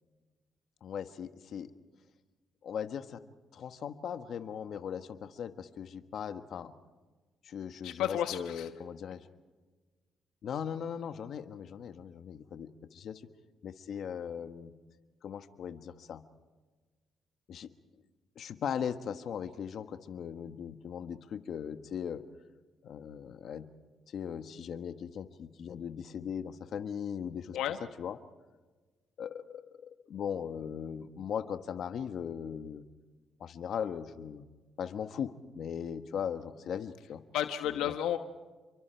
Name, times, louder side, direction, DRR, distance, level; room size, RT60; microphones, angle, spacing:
voice 1, 0.8-1.7 2.6-3.2 3.5-6.7 7.4-9.2 10.4-13.2 13.6-14.7 15.2-16.2 17.5-17.7 18.3-22.2 22.8-23.7 24.1-27.6 28.0-28.2 29.2-32.8 33.4-34.5 34.8-37.2 37.6-37.9, left 8 dB, 65° left, 9 dB, 1.4 m, -39 dB
voice 2, 7.8-8.7 27.5-27.8 37.3-38.2, left 11 dB, 90° left, 8 dB, 1.1 m, -32 dB
29.0 x 24.0 x 4.6 m, 1.3 s
cardioid pair, 90°, 0 cm